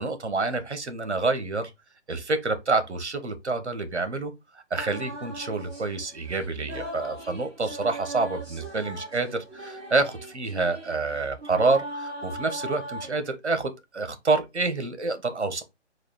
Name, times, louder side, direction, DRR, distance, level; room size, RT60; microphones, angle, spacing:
voice 1, 0.0-1.7 2.1-4.3 4.7-15.6, right 3 dB, 70° right, 1.2 m, -27 dB
sound 1, 4.8-13.2, right 1 dB, 20° right, 2.0 m, -39 dB
4.0 x 2.6 x 4.8 m
figure-of-eight pair, 145°, 35 cm